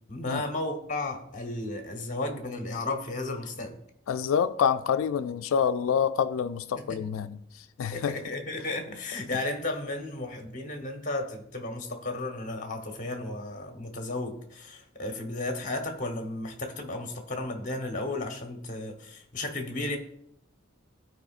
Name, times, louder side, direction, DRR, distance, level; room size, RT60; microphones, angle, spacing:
voice 1, 0.1-3.8 6.8-7.0 7.9-20.0, left 2 dB, 40° left, 1.0 m, -34 dB
voice 2, 4.1-8.1, left 7 dB, 85° left, 0.3 m, -27 dB
13.0 x 4.8 x 2.4 m
head